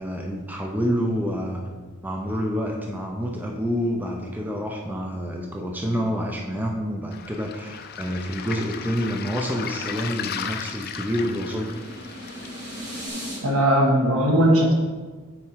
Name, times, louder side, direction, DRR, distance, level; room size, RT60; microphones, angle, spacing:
voice 1, 0.0-1.6 2.0-11.8, equal, 10° right, 1 dB, 0.5 m, -28 dB
Waves surf, 7.1-13.1, left 7 dB, 45° left, 0.4 m, -36 dB
sound 1, 10.4-13.4, equal, 35° right, 2.0 m, -39 dB
voice 2, 13.4-14.7, right 1 dB, 75° right, -1 dB, 1.5 m, -18 dB
8.3 x 4.4 x 4.5 m, 1.3 s
head